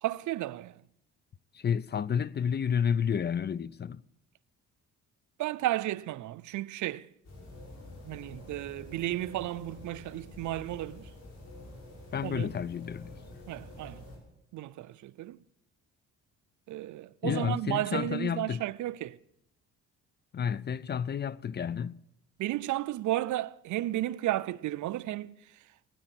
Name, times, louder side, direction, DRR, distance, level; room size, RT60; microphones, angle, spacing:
voice 1, 0.0-0.8 5.4-7.1 8.0-11.1 12.2-12.6 13.5-14.0 14.5-15.4 16.7-19.2 22.4-25.7, right 15 dB, 75° right, 0.6 m, -33 dB
voice 2, 1.5-4.0 12.1-13.2 17.2-18.6 20.3-22.0, left 7 dB, 35° left, 0.5 m, -31 dB
sound 1, 7.2-14.2, left 2 dB, 60° left, 6.0 m, -48 dB
16.5 x 10.0 x 7.7 m
cardioid pair, 90°, 30 cm